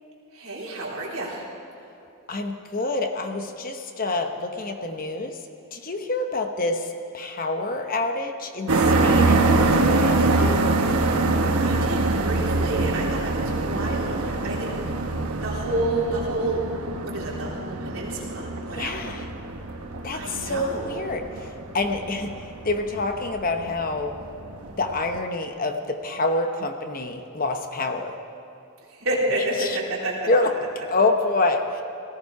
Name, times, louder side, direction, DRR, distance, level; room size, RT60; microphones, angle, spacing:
voice 1, 0.3-1.5 11.6-14.7 15.4-16.7 17.0-19.0 20.1-20.9 28.9-30.3, right 1 dB, 70° right, -5 dB, 3.6 m, -29 dB
voice 2, 2.3-5.4 5.7-10.6 18.7-19.2 20.0-24.2 24.8-28.1 29.6-29.8 30.3-30.5 30.9-31.8, left 2 dB, 40° left, 6 dB, 0.9 m, -27 dB
sound 1, 8.7-25.2, right 2 dB, 85° right, 1.1 m, -24 dB
18.5 x 14.5 x 4.7 m, 2.8 s
head